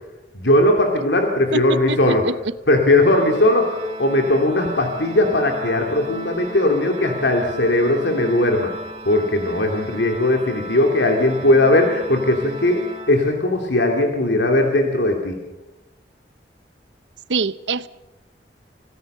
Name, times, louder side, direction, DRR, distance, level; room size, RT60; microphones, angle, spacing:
voice 1, 0.3-2.2 2.7-3.7 4.0-8.7 9.0-15.4, left 1 dB, 80° left, 2.7 m, -18 dB
voice 2, 1.5-2.5 17.3-17.9, right 4 dB, 85° right, 0.8 m, -24 dB
Organ, 3.0-13.7, right 1 dB, 35° right, 2.9 m, -36 dB
25.5 x 17.5 x 6.7 m
head